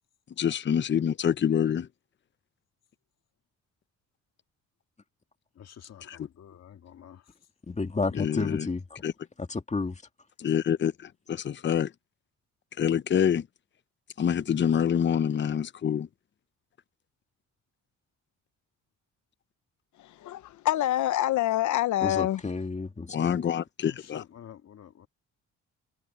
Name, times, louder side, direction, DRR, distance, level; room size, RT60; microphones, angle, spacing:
voice 1, 0.4-1.9 6.1-6.3 8.1-8.7 9.0-9.1 10.4-11.9 12.8-13.5 14.2-16.1 23.1-24.2, left 8 dB, 40° left, 0.7 m, -26 dB
voice 2, 5.6-7.3 23.8-25.1, left 9 dB, 60° left, 2.0 m, -48 dB
voice 3, 7.7-9.0 9.4-10.0 22.0-23.3, left 3 dB, 25° left, 2.2 m, -31 dB
voice 4, 20.0-22.4, left 14 dB, 75° left, 1.0 m, -26 dB
cardioid pair, 90°, 30 cm